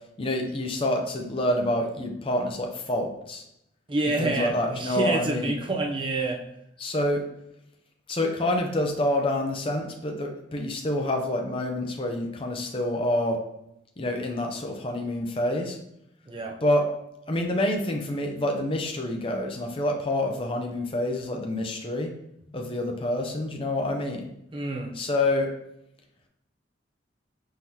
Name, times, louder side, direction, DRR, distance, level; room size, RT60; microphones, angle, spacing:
voice 1, 0.2-3.4 4.2-5.5 6.8-7.2 8.1-13.4 14.0-15.8 16.6-16.8 17.3-22.1 22.5-24.3 24.9-25.5, left 1 dB, 30° left, 2 dB, 0.5 m, -27 dB
voice 2, 3.9-6.4 16.3-16.6 24.5-24.9, right 2 dB, 25° right, 1 dB, 0.5 m, -28 dB
4.6 x 3.8 x 2.7 m, 0.79 s
head